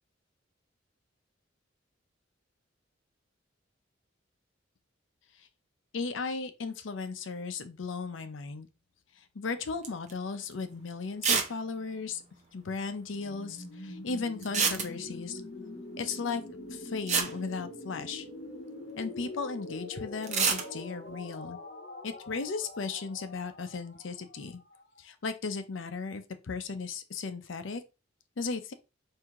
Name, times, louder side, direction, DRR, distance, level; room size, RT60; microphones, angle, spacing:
voice 1, 5.9-8.7 9.2-12.2 12.5-15.4 16.0-16.4 16.7-18.3 19.0-21.6 22.0-24.6 25.0-27.8 28.4-28.7, left 4 dB, 80° left, 0.6 m, -36 dB
sound 1, 9.8-10.1 10.5-10.6 11.2-11.6 11.8-11.9 12.1-12.2 14.4-15.3 16.7-16.8 17.1-18.3 20.2-20.7, right 5 dB, 40° right, 0.8 m, -28 dB
sound 2, 13.1-24.9, left 2 dB, 55° left, 1.0 m, -44 dB
4.6 x 2.7 x 3.6 m
head